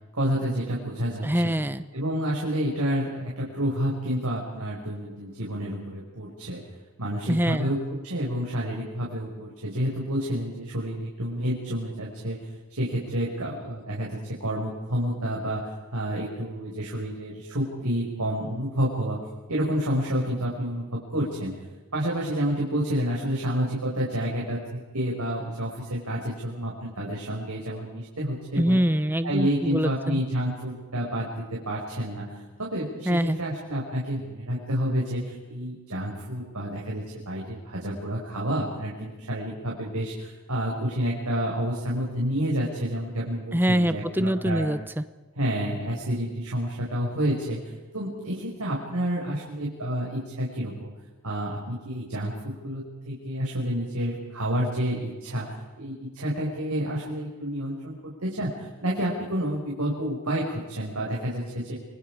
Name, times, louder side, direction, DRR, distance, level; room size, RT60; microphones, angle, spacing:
voice 1, 0.1-1.5 1.9-6.6 7.0-12.4 12.8-21.6 21.9-28.8 29.2-44.7 45.4-47.6 47.9-50.9 51.2-61.7, equal, 85° right, -3 dB, 5.3 m, -29 dB
voice 2, 1.2-1.8 7.3-7.7 28.5-30.2 33.1-33.4 43.5-45.0, equal, 10° right, 12 dB, 0.9 m, -24 dB
29.0 x 23.5 x 4.9 m, 1.2 s
head